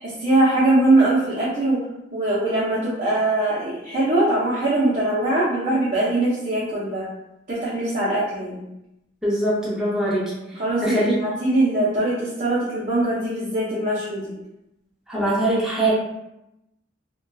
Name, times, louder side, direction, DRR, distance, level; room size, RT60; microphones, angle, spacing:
voice 1, 0.0-1.8 2.1-7.1 7.5-8.6 10.6-14.4, right 2 dB, 40° right, -9 dB, 0.6 m, -21 dB
voice 2, 9.2-10.3 10.8-11.2 15.1-15.9, right 1 dB, 5° right, -8 dB, 0.7 m, -22 dB
2.8 x 2.2 x 2.2 m, 0.88 s
head